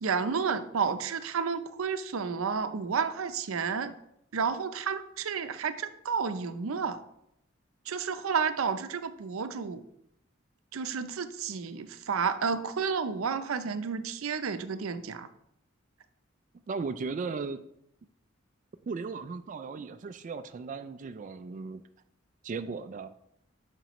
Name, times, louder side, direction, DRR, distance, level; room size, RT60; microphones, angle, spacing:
voice 1, 0.0-3.9 4.3-7.0 7.9-9.8 10.7-15.3, right 6 dB, 90° right, 11 dB, 0.5 m, -31 dB
voice 2, 16.7-17.6 18.9-21.8 22.4-23.1, right 4 dB, 40° right, 9 dB, 0.3 m, -36 dB
9.0 x 5.9 x 3.0 m, 0.77 s
head